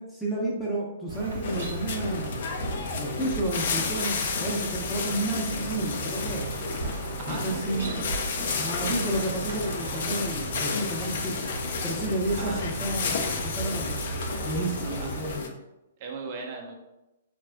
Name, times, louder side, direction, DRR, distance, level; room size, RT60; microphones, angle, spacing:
voice 1, 0.0-2.5 3.0-6.5 7.2-8.1 8.6-14.0 14.4-15.5, right 2 dB, 5° left, -6 dB, 0.8 m, -31 dB
sound 1, 1.1-15.4, right 2 dB, 75° right, 0.9 m, -36 dB
sound 2, 1.4-15.5, left 5 dB, 55° left, 0.4 m, -32 dB
voice 2, 7.2-8.7 12.4-12.6 15.0-15.1 16.0-16.8, right 4 dB, 40° right, 1 dB, 0.5 m, -38 dB
3.4 x 2.3 x 2.2 m, 0.96 s
figure-of-eight pair, 120°, 0 cm